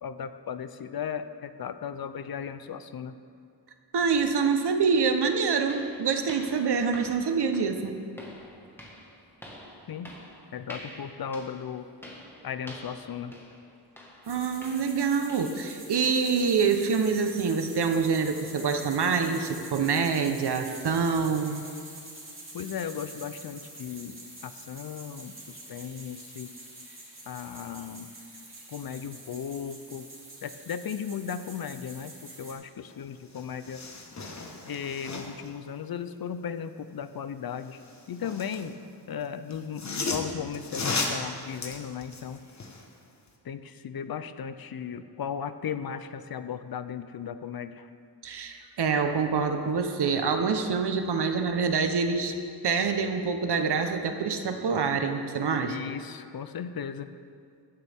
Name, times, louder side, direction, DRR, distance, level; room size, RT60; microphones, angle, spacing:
voice 1, 0.0-3.1 9.9-10.1 10.5-11.9 12.4-13.3 22.5-26.5 27.3-28.1 28.7-30.1 30.4-33.8 34.7-37.8 38.1-38.8 39.1-42.4 43.4-47.9 55.6-57.1, left 7 dB, 55° left, 11 dB, 0.6 m, -36 dB
voice 2, 3.9-8.0 14.3-21.6 48.2-52.3 52.6-55.8, right 5 dB, 65° right, 6 dB, 1.1 m, -26 dB
sound 1, 5.1-15.7 16.0-16.3 16.7-16.8 17.3-17.4 18.0-18.1, equal, 5° left, 1.6 m, -48 dB
sound 2, 14.2-32.5, right 2 dB, 30° right, 2.9 m, -46 dB
sound 3, 32.9-33.0 33.3-35.5 37.6-38.7 39.5-42.9 43.3-43.4, left 3 dB, 40° left, 1.3 m, -35 dB
16.0 x 12.0 x 3.6 m, 2.3 s
wide cardioid pair, 150°, 42 cm